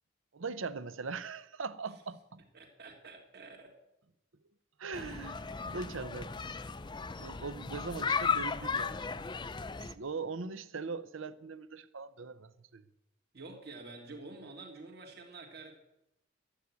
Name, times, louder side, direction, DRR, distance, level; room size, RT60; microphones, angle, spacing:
voice 1, 0.3-2.4 4.8-6.3 7.2-9.0 9.8-12.8, right 4 dB, 75° right, 0.8 m, -41 dB
voice 2, 2.5-3.8 13.3-15.8, right 3 dB, 50° right, 2.1 m, -48 dB
sound 1, 4.9-9.9, left 5 dB, 20° left, 0.4 m, -35 dB
12.0 x 8.4 x 9.3 m
head